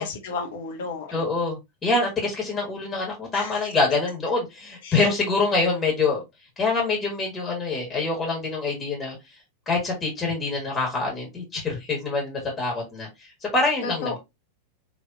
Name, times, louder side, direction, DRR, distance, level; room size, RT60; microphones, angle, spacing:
voice 1, 0.0-1.3 3.3-3.5 4.8-5.0 13.8-14.2, left 4 dB, 55° left, 0.9 m, -32 dB
voice 2, 1.1-6.2 6.6-9.2 9.7-14.2, left 3 dB, 20° left, 1.8 m, -25 dB
4.1 x 3.1 x 2.6 m
figure-of-eight pair, 90°, 0 cm